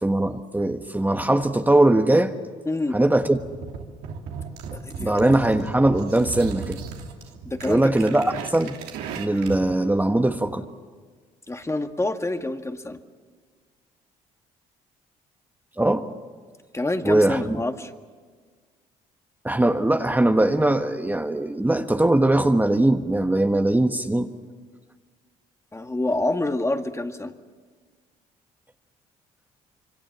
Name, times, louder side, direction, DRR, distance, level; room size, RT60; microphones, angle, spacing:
voice 1, 0.0-2.3 2.9-3.4 5.0-6.8 7.6-8.8 9.2-10.7 15.8-16.1 17.0-17.4 19.4-24.3, right 1 dB, 10° right, 6 dB, 1.4 m, -20 dB
voice 2, 2.7-3.0 4.7-5.4 7.5-7.9 11.5-13.0 16.7-17.9 25.7-27.3, left 2 dB, 15° left, 7 dB, 1.9 m, -27 dB
sound 1, 3.3-9.7, right 5 dB, 80° right, 2.9 m, -36 dB
26.0 x 24.5 x 7.5 m, 1.5 s
hypercardioid pair, 60°, 17 cm